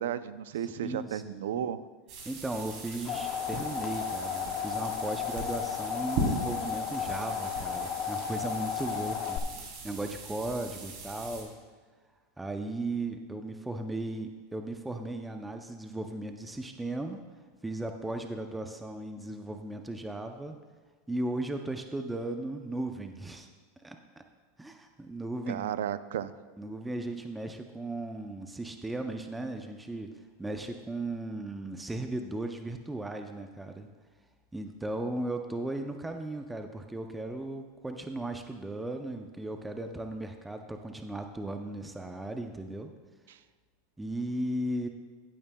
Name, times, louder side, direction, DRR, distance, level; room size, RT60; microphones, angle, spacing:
voice 1, 0.0-1.8 25.5-26.3 43.3-43.4, right 10 dB, 85° right, 14 dB, 0.4 m, -33 dB
voice 2, 0.6-1.7 2.2-9.4 9.8-11.5 12.4-17.2 17.6-20.6 21.1-23.5 23.8-24.2 24.6-25.7 26.6-33.9 34.5-42.9 44.0-44.9, right 2 dB, 5° right, 5 dB, 0.5 m, -36 dB
sound 1, 2.1-11.4, right 2 dB, 55° right, 2.9 m, -39 dB
sound 2, 2.7-9.4, left 8 dB, 45° left, 0.7 m, -34 dB
15.0 x 8.9 x 2.3 m, 1.4 s
supercardioid pair, 135°, 0 cm